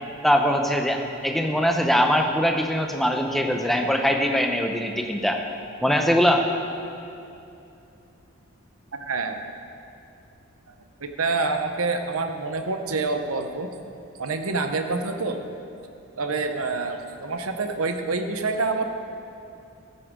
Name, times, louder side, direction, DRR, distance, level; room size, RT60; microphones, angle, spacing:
voice 1, 0.2-5.4 5.8-6.4, equal, ahead, 3 dB, 0.8 m, -22 dB
voice 2, 9.0-9.4 11.0-13.7 14.2-15.4 16.2-18.9, right 3 dB, 85° right, 6 dB, 1.0 m, -27 dB
14.0 x 13.5 x 3.7 m, 2.7 s
head